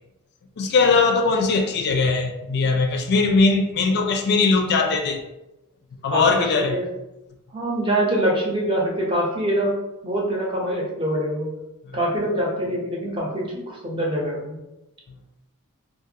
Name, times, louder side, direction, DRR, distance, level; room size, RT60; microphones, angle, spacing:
voice 1, 0.6-5.2 6.0-6.8, left 4 dB, 50° left, 4 dB, 0.4 m, -20 dB
voice 2, 6.1-6.8 7.5-9.7 10.0-11.5 11.9-14.6, right 1 dB, 25° right, -3 dB, 0.7 m, -24 dB
2.5 x 2.3 x 2.7 m, 0.94 s
head